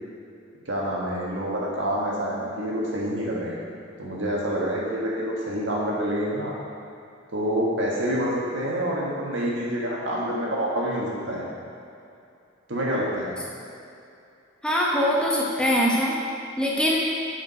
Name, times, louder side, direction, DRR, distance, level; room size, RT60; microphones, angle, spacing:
voice 1, 0.6-3.6 4.0-6.5 7.3-11.5 12.7-13.3, equal, 70° right, -5 dB, 1.7 m, -27 dB
voice 2, 14.6-16.2 16.6-17.0, equal, 5° left, -5 dB, 0.9 m, -22 dB
8.3 x 5.0 x 4.9 m, 2.5 s
head